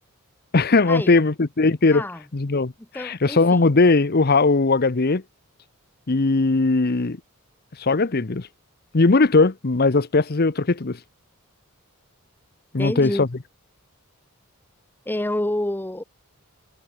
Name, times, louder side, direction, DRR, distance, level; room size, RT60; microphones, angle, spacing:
voice 1, 0.5-2.0 2.3-5.2 6.1-7.2 7.8-8.5 8.9-11.0 12.7-13.3, left 3 dB, 45° left, 0.8 m, -19 dB
voice 2, 1.9-2.2 2.8-3.7 12.8-13.3 15.1-16.0, left 1 dB, 10° left, 0.7 m, -28 dB
head